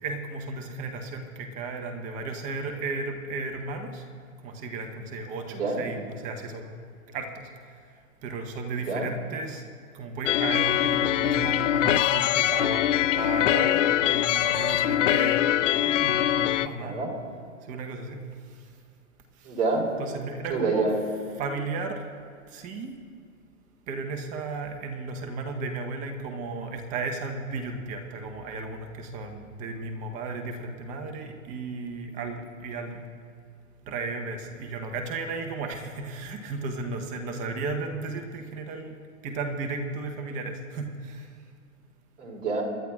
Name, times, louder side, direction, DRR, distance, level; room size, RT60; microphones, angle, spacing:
voice 1, 0.0-4.0 4.4-6.6 7.1-7.4 8.2-9.6 9.9-12.9 13.2-15.5 16.0-17.0 17.7-18.2 20.0-20.9 21.4-22.0 22.5-22.9 23.9-33.0 33.8-41.3, right 3 dB, 20° right, 4 dB, 0.8 m, -34 dB
voice 2, 5.5-5.8 8.9-9.1 16.8-17.1 19.4-19.9 20.5-20.9 42.2-42.6, right 3 dB, 60° right, -3 dB, 3.6 m, -27 dB
sound 1, 10.3-16.7, left 12 dB, 60° left, 0.5 m, -23 dB
25.5 x 11.5 x 2.3 m, 2.1 s
hypercardioid pair, 140°, 42 cm